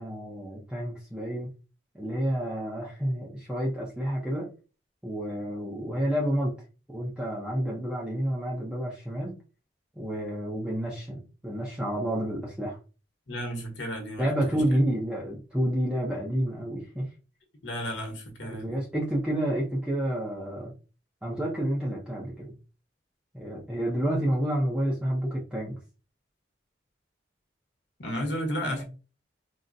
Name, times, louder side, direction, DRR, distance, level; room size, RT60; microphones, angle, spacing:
voice 1, 0.0-1.5 1.9-4.5 5.0-6.5 6.9-9.4 10.0-12.8 14.2-17.1 18.5-20.7 21.2-22.5 23.3-25.8 28.6-28.8, right 1 dB, 5° right, 0.5 m, -29 dB
voice 2, 13.3-14.8 17.6-18.8 28.0-28.8, equal, 75° left, 1.0 m, -33 dB
3.8 x 2.1 x 2.5 m
head